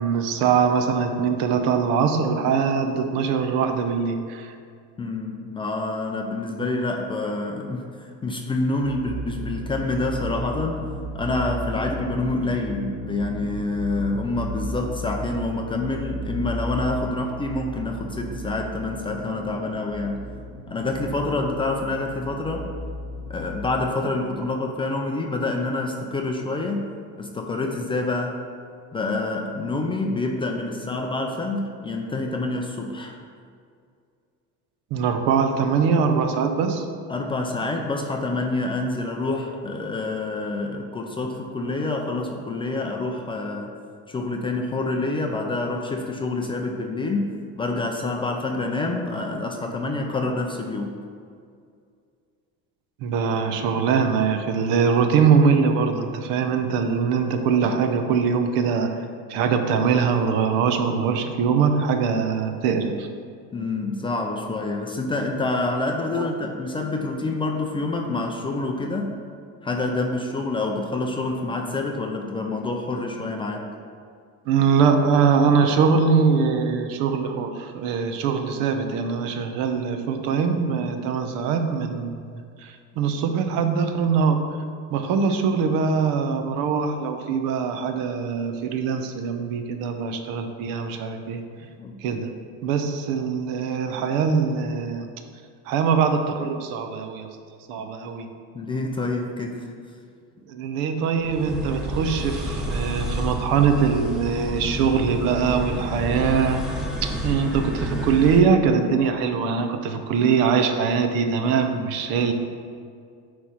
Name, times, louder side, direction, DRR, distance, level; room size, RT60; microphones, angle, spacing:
voice 1, 0.0-4.5 34.9-36.8 53.0-59.0 59.3-63.1 66.2-66.3 74.5-84.4 84.9-91.4 92.0-92.3 92.6-95.1 95.7-97.3 97.7-98.3 100.5-112.3, right 6 dB, 70° right, 6 dB, 0.9 m, -22 dB
voice 2, 5.0-10.8 11.1-20.2 20.7-22.7 23.3-26.8 27.2-28.4 28.9-33.2 37.1-43.7 44.1-47.3 47.6-51.0 63.5-69.1 69.6-73.7 91.6-92.2 98.5-99.7, left 2 dB, 15° left, 2 dB, 0.4 m, -27 dB
sound 1, 8.8-23.7, equal, 35° right, 0.6 m, -34 dB
sound 2, 101.2-108.4, equal, ahead, 0.8 m, -30 dB
9.6 x 3.3 x 5.6 m, 2.2 s
cardioid pair, 155°, 35 cm